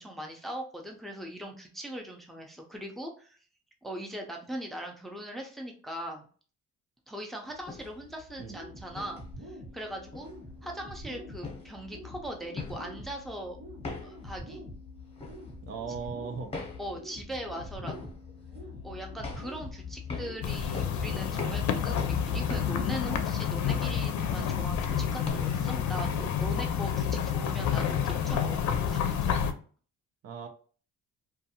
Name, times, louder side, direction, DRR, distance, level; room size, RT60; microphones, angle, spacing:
voice 1, 0.0-3.4 3.8-6.3 7.1-10.3 10.6-13.6 14.0-14.6 16.8-18.1 18.8-28.6 28.9-29.3, right 1 dB, ahead, 1 dB, 0.5 m, -40 dB
sound 1, 7.5-25.3, left 4 dB, 20° left, 0.9 m, -43 dB
sound 2, 8.5-28.5, right 1 dB, 75° right, 1.2 m, -47 dB
voice 2, 15.6-16.5 26.9-27.2 30.2-30.5, right 5 dB, 50° right, 4 dB, 0.6 m, -38 dB
sound 3, 20.4-29.5, left 8 dB, 70° left, 0.5 m, -29 dB
2.5 x 2.4 x 2.8 m, 0.41 s
cardioid pair, 90°, 30 cm